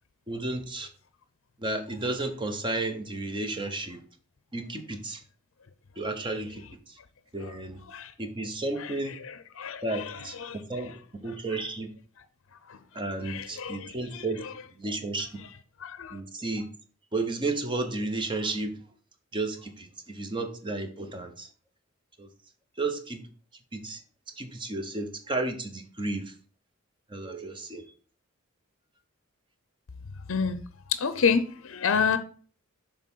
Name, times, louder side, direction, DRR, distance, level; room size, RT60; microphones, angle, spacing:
voice 1, 0.3-0.9 1.6-4.0 4.5-5.2 6.0-6.6 7.3-7.8 8.2-9.2 9.8-10.3 10.7-10.9 11.2-11.9 12.9-14.4 14.8-15.3 16.1-16.7 17.1-18.7 19.3-21.5 22.2-22.3 22.8-23.2 23.7-24.0 24.4-26.3 27.1-27.8, right 2 dB, 25° right, 0.9 m, -32 dB
voice 2, 8.8-11.0 11.3-11.6 12.2-12.3 12.7-12.8 13.2-14.5 15.4-15.5 15.8-16.2 30.3-30.6 30.9-32.2, left 6 dB, 65° left, 0.6 m, -30 dB
6.6 x 3.4 x 5.4 m
head